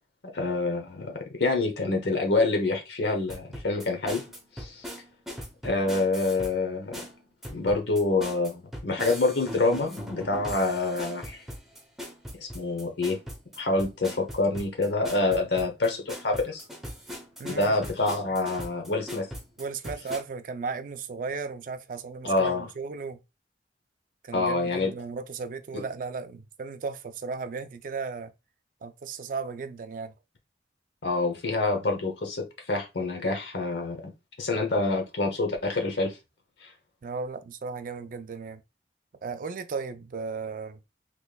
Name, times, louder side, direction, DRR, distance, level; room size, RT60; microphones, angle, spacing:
voice 1, 0.2-4.2 4.6-4.9 5.6-7.0 7.5-11.4 12.3-13.2 13.6-16.6 17.4-19.3 22.2-22.7 24.3-24.9 25.7-25.8 31.0-34.1 34.4-36.1 36.6-36.7, left 2 dB, 80° left, 0.9 m, -27 dB
sound 1, 3.3-6.6 6.9-20.2, equal, ahead, 0.7 m, -40 dB
voice 2, 17.4-17.8 19.6-23.2 24.2-28.3 28.8-30.1 37.0-38.6 39.2-40.8, right 4 dB, 50° right, 0.3 m, -35 dB
3.5 x 3.1 x 2.2 m
head